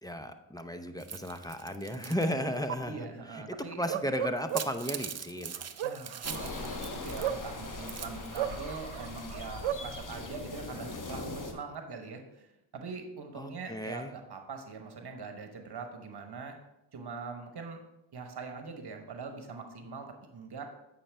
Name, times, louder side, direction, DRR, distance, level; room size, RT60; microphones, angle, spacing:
voice 1, 0.0-5.6 13.4-14.1, equal, 10° left, 8 dB, 0.7 m, -35 dB
sound 1, 1.0-2.3 2.7-2.8 4.4-7.4 7.7-8.5, right 7 dB, 35° right, 0.6 m, -41 dB
voice 2, 1.9-2.4 2.9-3.8 5.8-16.6 16.9-17.8 18.1-20.6, right 4 dB, 55° right, 5 dB, 1.2 m, -43 dB
Bark, 3.8-4.9 5.5-7.9 8.4-9.9, right 11 dB, 80° right, 0.5 m, -35 dB
sound 2, 6.2-11.5, left 3 dB, 40° left, 1.2 m, -40 dB
8.5 x 5.6 x 3.4 m, 0.89 s
cardioid pair, 50°, 48 cm